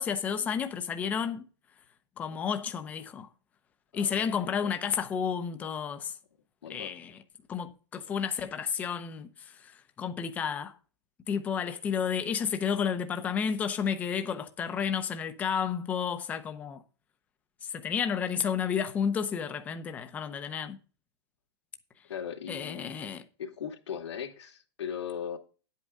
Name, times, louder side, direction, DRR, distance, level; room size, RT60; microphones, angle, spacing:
voice 1, 0.0-1.5 2.2-3.3 3.9-6.1 6.7-7.2 7.5-9.5 10.0-10.7 11.3-16.8 17.7-20.8 22.5-23.2, left 7 dB, 10° left, 0.6 m, -31 dB
voice 2, 3.9-4.7 6.6-6.9 22.1-23.1 23.4-25.4, left 8 dB, 85° left, 2.4 m, -39 dB
9.9 x 8.2 x 3.7 m
hypercardioid pair, 165°, 14 cm